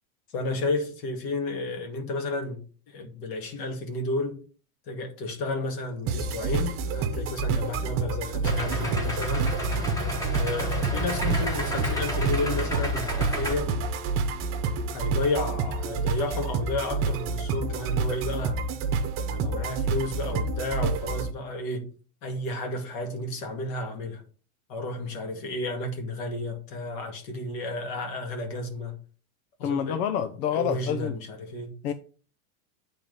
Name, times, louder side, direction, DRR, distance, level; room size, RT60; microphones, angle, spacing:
voice 1, 0.3-2.6 2.9-4.4 4.9-9.5 10.4-14.0 14.9-18.6 19.3-21.8 22.2-24.2 24.7-28.9 29.6-30.0 30.5-31.8, left 2 dB, 50° left, 2.2 m, -32 dB
sound 1, 6.1-21.3, right 4 dB, 30° right, 0.9 m, -29 dB
Idling, 8.4-13.5, equal, 10° left, 1.2 m, -30 dB
voice 2, 29.6-31.1 31.8-31.9, left 8 dB, 85° left, 0.8 m, -27 dB
8.9 x 3.7 x 5.3 m
supercardioid pair, 165°, 43 cm